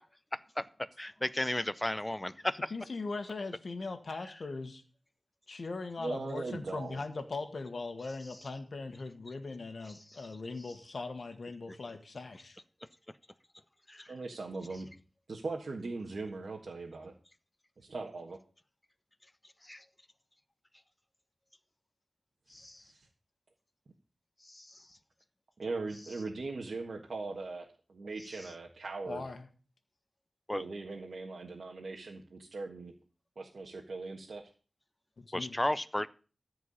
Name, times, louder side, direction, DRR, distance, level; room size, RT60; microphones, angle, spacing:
voice 1, 1.0-2.7 13.9-14.1 19.6-19.8 22.5-22.8 24.5-24.7 30.5-30.6 35.3-36.1, left 1 dB, 15° left, 0.6 m, -34 dB
voice 2, 2.7-4.8 5.5-12.6 29.1-29.4 35.2-35.5, left 3 dB, 65° left, 1.5 m, -40 dB
voice 3, 6.0-7.0 14.1-14.9 15.3-17.1 17.8-18.4 22.6-23.1 25.6-29.3 30.5-32.9 33.4-34.4, right 3 dB, 70° right, 1.6 m, -40 dB
14.0 x 4.8 x 8.6 m
wide cardioid pair, 90°, 0 cm